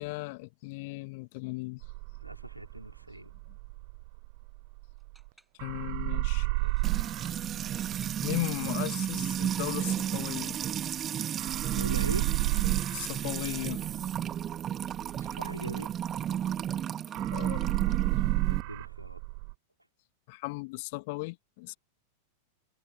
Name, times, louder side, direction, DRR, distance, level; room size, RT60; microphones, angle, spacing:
voice 1, 0.0-1.8 5.6-6.5 8.2-10.6 12.9-13.8 17.3-17.7 20.3-21.7, left 26 dB, 50° left, 2.1 m, -36 dB
sound 1, 1.8-5.3 5.6-11.1 11.4-16.8 17.1-19.5, right 30 dB, 45° right, 0.4 m, -33 dB
voice 2, 2.2-3.3 6.4-6.8 11.7-12.3 15.2-15.9 18.5-19.2, right 1 dB, 85° right, 3.8 m, -41 dB
sound 2, 5.0-5.9 6.3-7.0 8.0-9.1 11.3-12.4 14.9-15.8 16.9-17.1, right 2 dB, 5° right, 6.7 m, -59 dB
Music / Water tap faucet / Trickle dribble, 6.8-18.6, right 10 dB, 25° right, 2.2 m, -33 dB
figure-of-eight pair, 90°, 0 cm